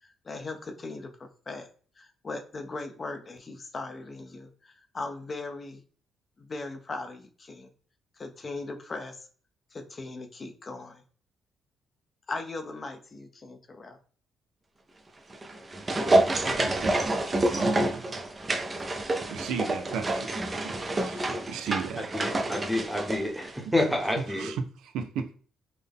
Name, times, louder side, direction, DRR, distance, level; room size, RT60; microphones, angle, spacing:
voice 1, 0.0-1.7 2.0-5.8 6.4-7.7 8.2-9.3 9.7-11.0 12.3-14.0, left 3 dB, 35° left, 0.5 m, -39 dB
sound 1, 15.3-23.9 24.2-24.3, right 2 dB, 30° right, 0.5 m, -28 dB
voice 2, 16.5-17.0 17.5-18.1 19.3-20.3 20.6-22.1 23.7-23.8 24.2-25.3, right 6 dB, 85° right, 0.3 m, -35 dB
voice 3, 22.1-24.5, left 1 dB, 5° right, 0.9 m, -28 dB
3.7 x 2.1 x 3.5 m
cardioid pair, 90°, 0 cm